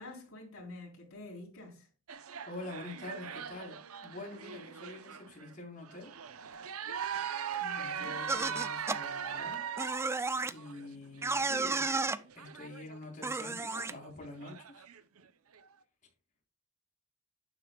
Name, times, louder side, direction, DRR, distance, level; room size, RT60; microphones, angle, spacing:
voice 1, 0.0-1.9 7.6-8.2, left 2 dB, 70° left, 3.8 m, -48 dB
sound 1, 2.1-5.5 5.8-15.2 15.5-15.7, right 7 dB, 90° right, 0.7 m, -41 dB
voice 2, 2.4-6.1 7.8-9.6 10.5-12.1 12.3-14.9, left 2 dB, 40° left, 4.2 m, -46 dB
sound 2, 8.3-9.0 9.8-10.5 11.2-12.2 13.2-13.9, right 3 dB, 10° right, 0.4 m, -32 dB
11.5 x 9.4 x 2.3 m
head